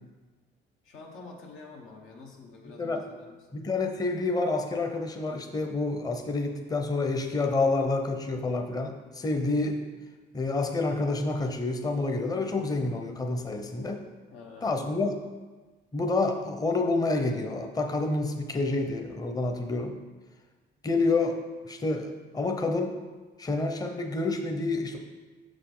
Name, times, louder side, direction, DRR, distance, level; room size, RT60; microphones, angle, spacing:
voice 1, 0.8-3.4 14.3-14.7, left 3 dB, 90° left, 0 dB, 1.1 m, -47 dB
voice 2, 3.5-9.8 10.3-14.0 14.6-15.2 15.9-20.0 20.8-21.4 21.7-23.0 23.4-25.0, left 3 dB, 20° left, 4 dB, 0.6 m, -28 dB
6.4 x 4.9 x 3.8 m, 1.3 s
cardioid pair, 90°, 20 cm